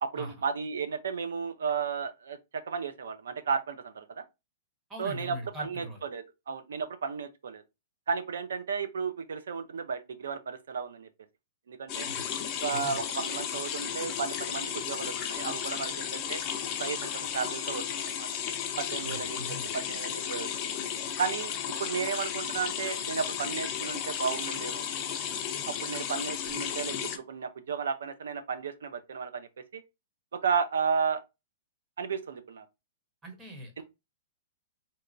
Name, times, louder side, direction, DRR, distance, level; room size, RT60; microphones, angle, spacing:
voice 1, 0.0-2.4 2.7-4.2 5.0-7.6 8.1-11.1 11.7-12.1 12.6-16.4 16.8-18.3 18.8-20.5 21.2-21.5 21.8-24.8 25.8-29.8 30.3-31.2 32.0-32.6 33.8-33.9, right 6 dB, 90° right, 0.5 m, -33 dB
voice 2, 4.9-6.0 12.0-12.3 12.7-13.0 19.0-19.7 33.2-33.8, equal, 15° right, 1.0 m, -41 dB
sound 1, 11.9-27.2, left 8 dB, 25° left, 0.5 m, -34 dB
3.4 x 2.8 x 2.5 m
hypercardioid pair, 160°, 0 cm